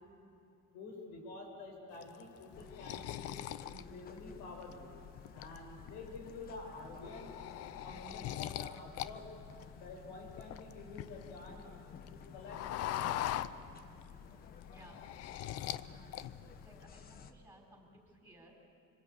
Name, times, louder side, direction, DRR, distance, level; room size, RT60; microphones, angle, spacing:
voice 1, 0.7-3.3 3.6-5.0 5.3-7.3 7.8-9.3 9.8-11.6 12.1-13.3, left 3 dB, 90° left, 2 dB, 6.5 m, -49 dB
sound 1, 2.0-4.7 5.2-5.9 6.3-6.5 6.8-9.1 9.4-11.5 11.8-14.1 14.4-15.9 16.1-16.7, left 13 dB, 55° left, 0.7 m, -41 dB
sound 2, 2.5-17.3, left 6 dB, 30° left, 1.1 m, -54 dB
voice 2, 14.7-15.0 15.4-16.0 16.6-18.5, right 1 dB, 5° right, 1 dB, 4.2 m, -60 dB
26.0 x 25.5 x 8.3 m, 2.4 s
cardioid pair, 170°, 30 cm